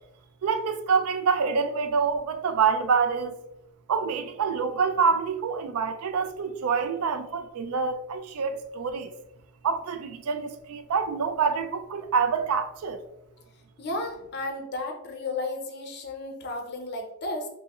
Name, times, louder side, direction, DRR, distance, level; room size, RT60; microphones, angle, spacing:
voice 1, 0.4-3.3 3.9-9.1 9.6-13.0, right 5 dB, 75° right, 0.4 m, -26 dB
voice 2, 13.8-17.5, left 2 dB, 50° left, 0.6 m, -33 dB
5.6 x 2.1 x 2.3 m
head